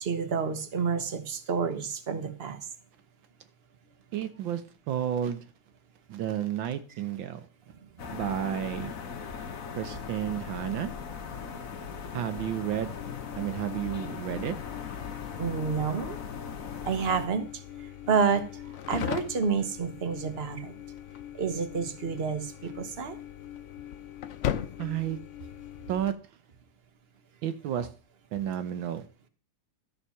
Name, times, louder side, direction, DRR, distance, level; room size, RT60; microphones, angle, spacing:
voice 1, 0.0-2.6 15.4-16.2 16.9-17.6 18.1-18.5 18.9-20.7 21.3-23.2, right 6 dB, 40° right, 1.0 m, -29 dB
voice 2, 4.1-4.6 4.9-5.4 6.1-7.5 8.1-8.9 9.7-10.9 12.1-13.0 13.4-14.6 24.8-25.2 25.9-26.1 27.4-27.9 28.3-29.0, right 10 dB, 75° right, 1.6 m, -31 dB
sound 1, 8.0-17.3, left 6 dB, 45° left, 1.5 m, -39 dB
sound 2, 12.9-26.1, left 10 dB, 80° left, 0.6 m, -39 dB
13.0 x 5.7 x 5.7 m
omnidirectional pair, 2.2 m